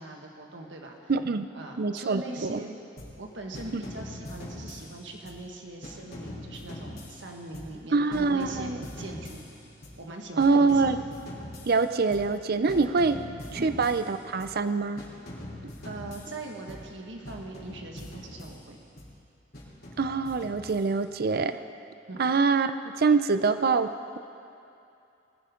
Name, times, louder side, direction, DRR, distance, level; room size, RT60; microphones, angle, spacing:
voice 1, 0.0-1.0 1.5-2.7 3.2-9.5 10.0-11.0 13.6-13.7 15.8-18.8 22.1-22.3, right 2 dB, 70° right, 1 dB, 1.8 m, -41 dB
voice 2, 1.1-1.5 1.8-2.6 3.7-3.8 7.9-8.8 10.4-11.0 11.6-13.2 13.5-15.0 20.0-21.6 22.2-22.7 23.0-24.2, right 4 dB, 55° right, 11 dB, 0.6 m, -25 dB
sound 1, 3.0-3.3 3.5-5.5 5.8-10.1 10.4-12.4 12.7-14.6 15.0-17.0 17.2-19.1 19.5-21.2, left 1 dB, 55° left, 3.6 m, -43 dB
20.5 x 15.5 x 3.8 m, 2.7 s
head